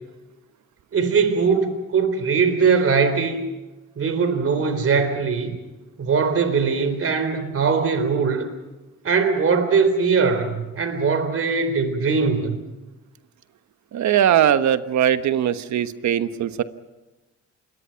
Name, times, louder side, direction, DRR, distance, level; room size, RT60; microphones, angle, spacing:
voice 1, 0.9-3.5 4.0-5.6 6.0-8.5 9.0-12.6, right 5 dB, 50° right, 10 dB, 3.7 m, -21 dB
voice 2, 13.9-16.6, right 10 dB, 65° right, 11 dB, 1.3 m, -20 dB
27.0 x 22.0 x 5.9 m, 1.1 s
cardioid pair, 90°, 30 cm